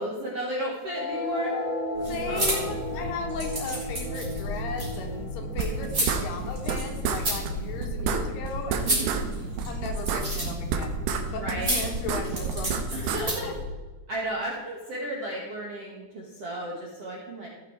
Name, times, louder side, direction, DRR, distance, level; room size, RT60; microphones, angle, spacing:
voice 1, 0.0-1.6 2.3-2.7 8.8-9.3 11.2-11.8 12.9-13.5 14.1-17.5, right 1 dB, 60° right, -4 dB, 1.6 m, -34 dB
sound 1, 0.8-7.8, left 2 dB, 45° left, 2.6 m, -36 dB
sound 2, 1.9-13.6, right 1 dB, 25° right, 3.1 m, -32 dB
voice 2, 2.1-9.0 9.7-11.0 11.3-13.5, left 4 dB, 75° left, 3 dB, 3.1 m, -36 dB
sound 3, 5.6-6.8 7.0-7.2 7.5-7.6 7.8-9.2 9.6-11.2 11.5-13.2, right 7 dB, 75° right, 2.4 m, -29 dB
16.0 x 5.7 x 4.4 m, 1.3 s
omnidirectional pair, 4.8 m